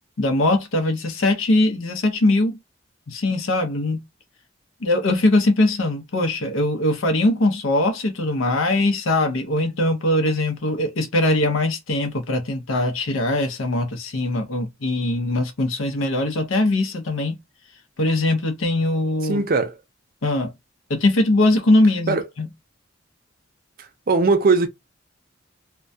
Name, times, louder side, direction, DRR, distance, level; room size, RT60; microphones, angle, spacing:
voice 1, 0.2-2.6 3.1-4.0 4.8-17.4 18.0-19.4 20.2-20.5 20.9-22.5, left 2 dB, 85° left, 0.7 m, -21 dB
voice 2, 19.2-19.8 22.1-22.2 23.8-24.7, right 3 dB, 45° right, 0.5 m, -20 dB
2.2 x 2.2 x 2.6 m
head